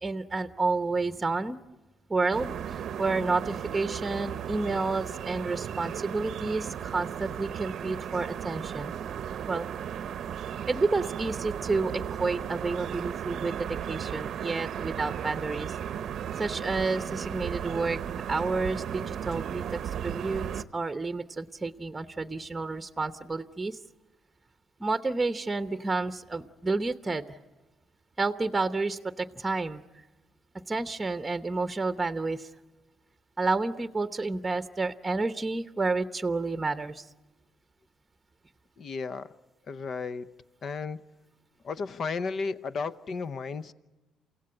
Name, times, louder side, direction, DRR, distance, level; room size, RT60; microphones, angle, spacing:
voice 1, 0.0-1.6 2.1-8.9 9.5-9.7 10.7-15.7 16.4-18.0 18.3-19.6 20.0-23.8 24.8-27.2 28.2-29.8 30.7-32.5 33.4-37.1, right 3 dB, 20° right, 9 dB, 0.9 m, -30 dB
sound 1, 2.3-20.6, right 9 dB, 65° right, 0.7 m, -35 dB
voice 2, 38.8-39.3 39.7-40.3 40.6-41.0 41.6-43.7, left 4 dB, 50° left, 13 dB, 0.9 m, -33 dB
28.5 x 16.5 x 9.7 m, 1.1 s
cardioid pair, 80°, 0 cm